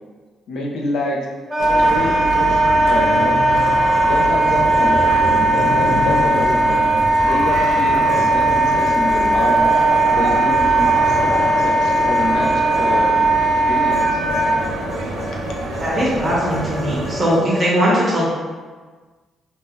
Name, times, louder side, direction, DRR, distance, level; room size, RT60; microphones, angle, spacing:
voice 1, 0.5-1.2 1.8-3.4 4.0-5.0 5.5-6.6 7.2-9.6 10.1-13.2 13.7-14.2, left 2 dB, 75° left, -1 dB, 0.5 m, -27 dB
Wind instrument woodwind instrument, 1.5-14.6, right 2 dB, 5° left, 1.3 m, -17 dB
sound 1, 1.6-17.2, right 2 dB, 80° right, 0.4 m, -27 dB
sound 2, 3.5-7.3 8.1-13.3 13.9-17.6, equal, 30° left, 1.1 m, -31 dB
voice 2, 15.8-18.3, equal, 30° right, -7 dB, 0.8 m, -19 dB
2.7 x 2.1 x 3.5 m, 1.4 s
cardioid pair, 90°, 0 cm